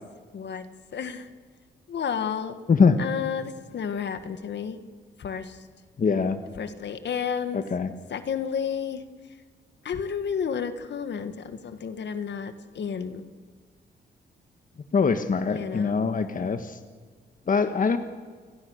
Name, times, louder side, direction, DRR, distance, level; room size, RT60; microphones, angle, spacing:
voice 1, 0.3-0.6 0.9-1.3 1.9-2.5 3.0-4.8 5.2-5.6 6.6-7.6 8.1-9.0 9.8-13.2 15.5-16.0, left 7 dB, 65° left, 9 dB, 1.8 m, -31 dB
voice 2, 6.0-6.4 7.5-7.9 14.9-16.8 17.5-18.0, left 5 dB, 45° left, 8 dB, 1.5 m, -23 dB
29.0 x 20.0 x 6.5 m, 1.5 s
cardioid pair, 80°, 19 cm